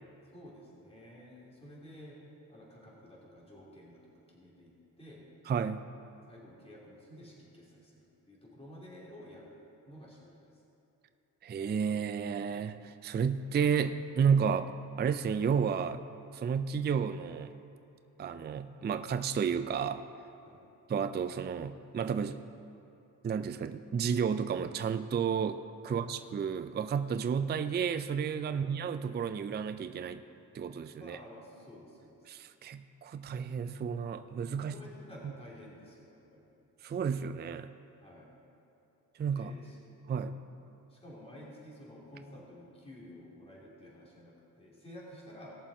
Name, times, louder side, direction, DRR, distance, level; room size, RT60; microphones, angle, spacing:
voice 1, 0.3-2.1 2.5-4.7 5.0-5.2 6.3-9.5 9.9-10.3 20.4-20.6 25.8-26.0 28.4-28.6 31.0-32.2 34.6-36.4 38.0-38.3 39.3-39.8 40.1-40.4 40.9-45.6, left 1 dB, 15° left, -5 dB, 3.1 m, -51 dB
voice 2, 5.4-5.8 11.4-14.7 15.0-16.0 16.3-17.5 18.2-20.0 20.9-22.4 23.2-30.2 30.5-31.2 32.3-34.7 35.2-35.3 36.8-37.7 39.2-39.5 40.1-40.4, right 6 dB, 25° right, 10 dB, 0.4 m, -32 dB
18.0 x 7.0 x 4.3 m, 2.8 s
supercardioid pair, 60°, 43 cm